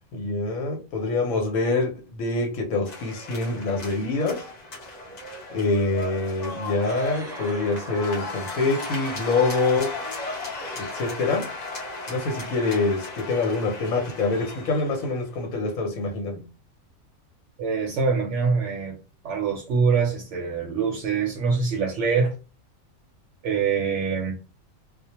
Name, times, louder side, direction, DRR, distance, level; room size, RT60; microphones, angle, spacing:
voice 1, 0.1-4.5 5.5-10.0 10.8-11.5 12.1-16.4, left 3 dB, 80° left, 1.1 m, -25 dB
sound 1, 2.9-15.3, left 2 dB, 40° left, 0.6 m, -35 dB
sound 2, 6.9-11.6, right 1 dB, ahead, 0.8 m, -45 dB
voice 2, 17.6-19.0 19.2-22.4 23.4-24.4, right 5 dB, 65° right, 0.8 m, -24 dB
2.3 x 2.1 x 2.8 m
omnidirectional pair, 1.4 m